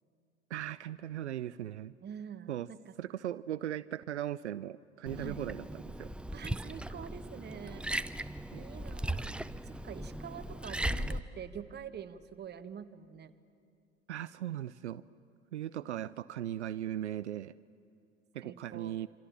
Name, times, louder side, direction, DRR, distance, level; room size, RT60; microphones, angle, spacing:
voice 1, 0.5-1.9 2.5-2.7 3.0-6.1 8.5-8.6 14.1-15.0 15.5-17.5 18.3-19.1, right 11 dB, 80° right, 17 dB, 0.5 m, -38 dB
voice 2, 2.0-2.9 5.2-5.4 6.3-7.9 8.5-9.4 9.6-13.3 18.4-18.9, right 8 dB, 30° right, 10 dB, 1.3 m, -46 dB
Liquid, 5.1-11.2, right 1 dB, 5° right, 0.6 m, -38 dB
27.0 x 25.0 x 7.2 m, 2.5 s
figure-of-eight pair, 70°, 34 cm